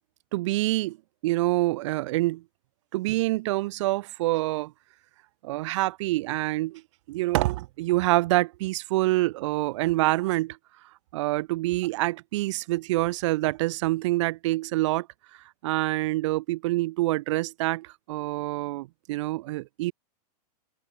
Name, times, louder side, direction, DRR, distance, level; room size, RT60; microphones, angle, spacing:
voice 1, 0.3-1.0 1.2-2.4 2.9-4.7 5.4-6.8 7.1-10.6 11.1-15.1 15.6-19.9, right 18 dB, 50° right, 3.6 m, -26 dB
open air
supercardioid pair, 160°, 20 cm